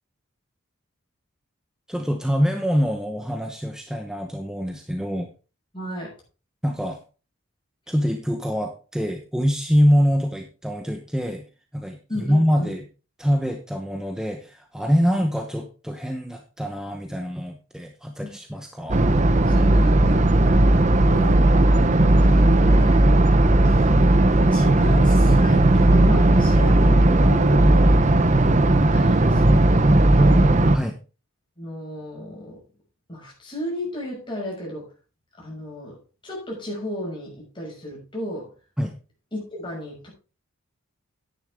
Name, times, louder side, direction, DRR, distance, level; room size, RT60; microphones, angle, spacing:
voice 1, 1.9-5.3 6.6-7.0 7.9-11.4 11.7-12.8 13.2-19.0 30.7-31.0 38.8-38.9, equal, 5° right, 4 dB, 0.8 m, -24 dB
voice 2, 5.7-6.1 12.1-12.7 15.0-15.2 18.2-18.4 19.4-20.3 21.1-23.1 23.6-24.1 24.5-28.4 28.9-30.5 31.6-32.6 33.1-34.9 35.4-36.0 36.2-38.5 39.3-40.1, equal, 20° left, -3 dB, 6.1 m, -34 dB
sound 1, 18.9-30.8, right 1 dB, 35° right, 0.7 m, -16 dB
10.5 x 9.9 x 3.6 m, 0.34 s
head